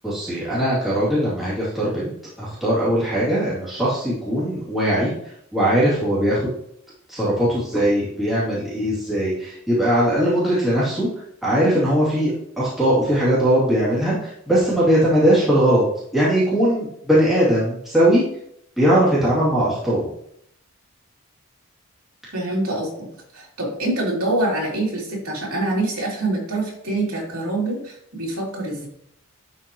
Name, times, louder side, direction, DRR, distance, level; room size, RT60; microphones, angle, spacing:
voice 1, 0.0-2.1 2.4-5.1 5.5-6.4 7.1-11.1 11.4-15.8 16.1-18.2 18.8-20.0, right 1 dB, ahead, -10 dB, 2.5 m, -20 dB
voice 2, 22.3-23.1 23.3-28.9, right 2 dB, 75° right, -3 dB, 2.9 m, -25 dB
11.0 x 4.6 x 3.0 m, 0.70 s
head